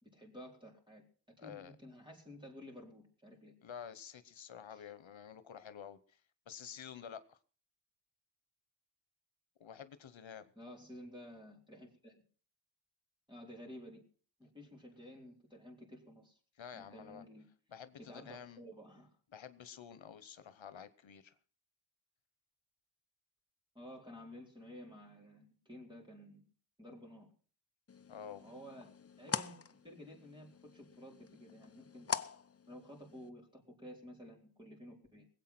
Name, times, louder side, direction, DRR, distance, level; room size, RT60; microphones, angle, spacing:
voice 1, 0.0-1.1 1.4-3.5 4.7-4.9 10.6-12.2 13.3-14.0 14.4-16.4 16.7-17.5 18.0-19.2 23.7-26.4 26.8-27.3 28.4-32.1 32.7-35.3, equal, 10° right, -1 dB, 4.2 m, -53 dB
voice 2, 1.4-1.7 3.6-6.2 6.5-7.4 9.6-10.4 16.6-17.2 17.7-18.6 19.3-21.3 28.1-28.4, left 8 dB, 80° left, 13 dB, 1.0 m, -50 dB
sound 1, 27.9-33.3, left 6 dB, 35° left, 0.6 m, -44 dB
20.5 x 8.4 x 6.0 m, 0.43 s
wide cardioid pair, 90°, 45 cm